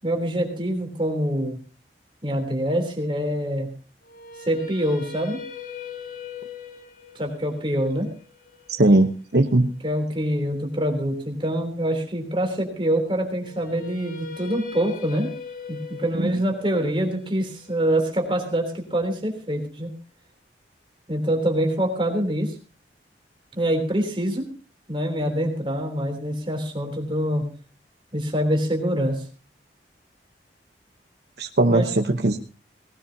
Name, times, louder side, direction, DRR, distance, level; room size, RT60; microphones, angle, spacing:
voice 1, 0.0-1.6 2.2-3.7 4.4-5.4 7.2-8.1 9.8-15.3 15.7-19.9 21.1-22.6 23.5-24.5 24.9-27.5 28.1-29.3 31.7-31.9, right 1 dB, 30° right, 3 dB, 3.4 m, -25 dB
sound 1, 4.0-10.1 13.4-19.5, left 5 dB, 50° left, 2.1 m, -41 dB
voice 2, 8.8-9.7 16.1-16.3 31.4-32.4, right 2 dB, 65° right, 5 dB, 1.0 m, -19 dB
19.5 x 18.0 x 2.8 m, 0.35 s
head